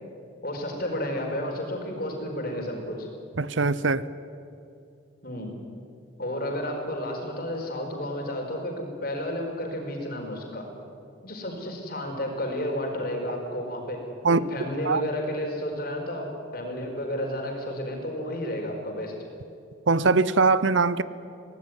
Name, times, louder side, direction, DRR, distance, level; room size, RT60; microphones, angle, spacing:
voice 1, 0.4-3.1 5.2-5.5 6.2-10.7 11.2-19.1, left 1 dB, 50° left, 4.8 m, -32 dB
voice 2, 3.4-4.0 14.2-14.4 14.8-15.0 19.9-21.0, right 4 dB, 70° right, 0.8 m, -21 dB
23.5 x 18.0 x 9.6 m
head